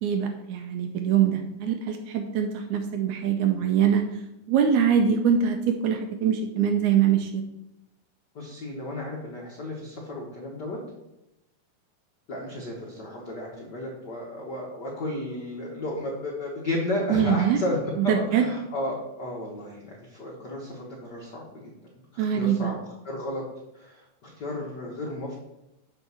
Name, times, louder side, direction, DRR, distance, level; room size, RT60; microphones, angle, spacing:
voice 1, 0.0-4.0 4.5-7.4 17.1-17.6 18.0-18.4 22.2-22.7, right 8 dB, 75° right, 5 dB, 1.8 m, -23 dB
voice 2, 8.3-10.8 12.3-17.8 18.0-21.7 22.1-22.8 23.0-23.4 23.7-25.4, left 1 dB, 85° left, -3 dB, 0.9 m, -33 dB
7.0 x 4.7 x 6.9 m, 0.91 s
omnidirectional pair, 4.0 m